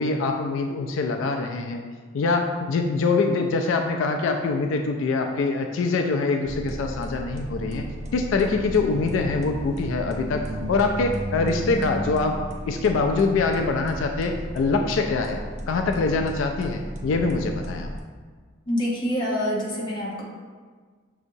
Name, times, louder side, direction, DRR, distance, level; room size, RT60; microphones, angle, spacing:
voice 1, 0.0-7.9 8.1-12.4 12.7-15.4 15.7-17.9, left 3 dB, 80° left, 3 dB, 0.3 m, -24 dB
sound 1, 6.4-18.0, equal, 35° right, 0.5 m, -34 dB
voice 2, 18.7-20.2, equal, 25° left, -5 dB, 1.0 m, -26 dB
6.0 x 2.8 x 2.6 m, 1.5 s
head